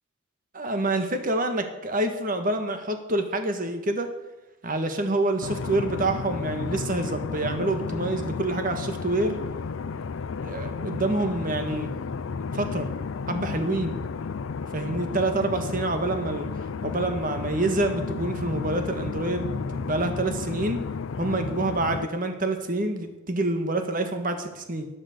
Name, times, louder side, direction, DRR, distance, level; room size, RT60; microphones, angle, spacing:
voice 1, 0.5-4.1 4.6-9.4 10.4-11.9 12.5-12.9 13.3-14.0 14.7-16.5 16.8-20.8 21.2-24.9, right 2 dB, 40° right, 7 dB, 1.7 m, -27 dB
sound 1, 5.4-22.1, left 5 dB, 75° left, 0.5 m, -32 dB
12.5 x 12.0 x 6.7 m, 1.0 s
head